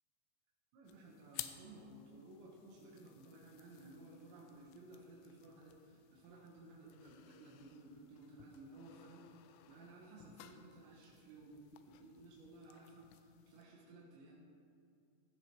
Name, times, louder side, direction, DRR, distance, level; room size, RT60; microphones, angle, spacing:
voice 1, 0.7-14.3, right 2 dB, 75° right, -4 dB, 3.4 m, -57 dB
sound 1, 0.9-13.6, left 13 dB, 85° left, 3.1 m, -56 dB
15.5 x 13.5 x 3.1 m, 2.3 s
omnidirectional pair, 5.5 m